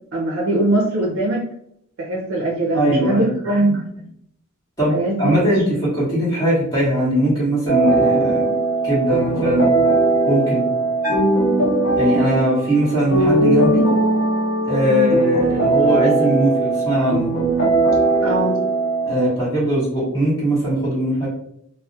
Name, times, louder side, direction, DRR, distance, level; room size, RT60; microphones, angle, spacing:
voice 1, 0.1-1.5 2.0-4.1 4.9-5.4 11.2-11.4 14.9-15.2 18.2-18.6, right 1 dB, 65° right, -2 dB, 0.5 m, -21 dB
voice 2, 2.7-3.3 4.8-8.5 8.8-9.7 10.3-10.6 12.0-13.8 14.6-17.3 19.1-21.3, right 1 dB, 15° left, -8 dB, 1.1 m, -20 dB
sound 1, 7.7-19.3, right 2 dB, 50° left, 0.7 m, -19 dB
Bell, 11.0-12.7, left 2 dB, 10° right, 0.9 m, -28 dB
2.3 x 2.0 x 2.6 m, 0.71 s
head